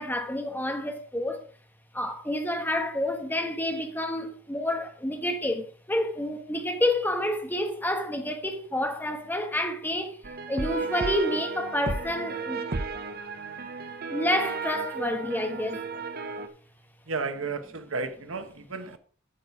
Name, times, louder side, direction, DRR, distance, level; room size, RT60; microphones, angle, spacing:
voice 1, 0.0-1.4 1.9-10.2 10.5-12.7 14.1-15.8, left 1 dB, 10° left, 1.3 m, -29 dB
Creepy Amish Man, 10.2-16.5, right 4 dB, 50° right, 0.9 m, -34 dB
voice 2, 17.1-19.0, right 4 dB, 90° right, 1.1 m, -33 dB
8.8 x 7.0 x 4.8 m
head